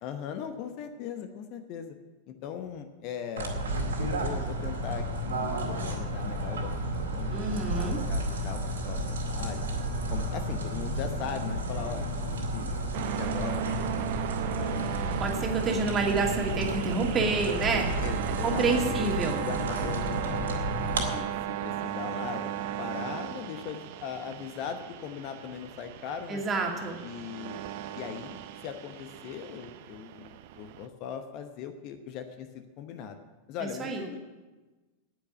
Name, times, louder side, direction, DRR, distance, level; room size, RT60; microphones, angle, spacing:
voice 1, 0.0-2.0 2.3-3.6 4.0-8.6 8.9-9.8 10.1-12.1 12.4-12.7 13.1-15.1 15.7-15.9 18.0-20.6 21.1-22.5 22.8-26.4 27.0-27.6 27.9-33.2 33.5-34.2, left 8 dB, 40° left, 8 dB, 1.0 m, -39 dB
sound 1, 3.4-21.1, right 1 dB, 65° right, 2.2 m, -32 dB
voice 2, 7.3-8.0 15.2-17.9 18.4-19.4 26.3-27.0 33.8-34.0, right 3 dB, 25° right, 2 dB, 2.3 m, -28 dB
sound 2, 12.9-30.9, right 12 dB, 50° right, 0.7 m, -36 dB
9.8 x 9.5 x 9.8 m, 1.2 s
figure-of-eight pair, 90°, 0 cm